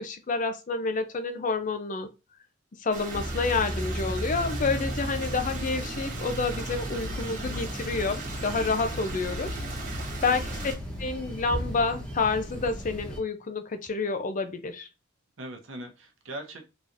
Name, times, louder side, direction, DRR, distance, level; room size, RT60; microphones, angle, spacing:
voice 1, 0.0-2.1 2.8-9.5 10.2-10.4 11.0-14.9, left 4 dB, 40° left, 9 dB, 0.5 m, -29 dB
Stream, 2.9-10.8, right 3 dB, 40° right, 1.2 m, -39 dB
sound 1, 3.1-13.2, equal, 5° left, 1.1 m, -35 dB
voice 2, 10.3-10.7 15.4-16.7, right 1 dB, 75° right, 3 dB, 0.8 m, -41 dB
3.9 x 2.9 x 2.5 m, 0.28 s
head